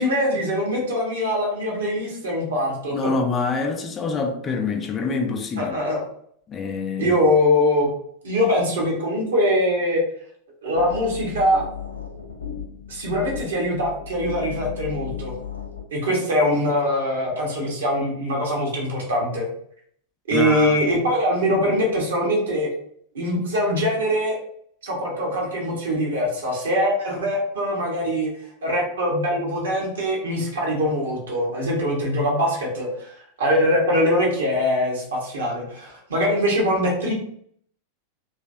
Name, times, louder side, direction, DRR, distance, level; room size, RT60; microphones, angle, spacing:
voice 1, 0.0-3.0 5.6-6.0 7.0-7.9 8.2-10.0 10.6-11.6 12.9-15.3 15.9-19.5 20.3-22.7 23.1-24.4 24.8-28.3 28.6-33.1 33.4-37.1, equal, 65° right, 1.3 m, -22 dB
voice 2, 2.9-5.8 6.5-7.1 20.3-20.8, left 4 dB, 25° left, 0.4 m, -26 dB
sound 1, 10.7-15.9, left 8 dB, 75° left, 0.5 m, -35 dB
3.1 x 3.0 x 2.7 m
figure-of-eight pair, 90°, 0 cm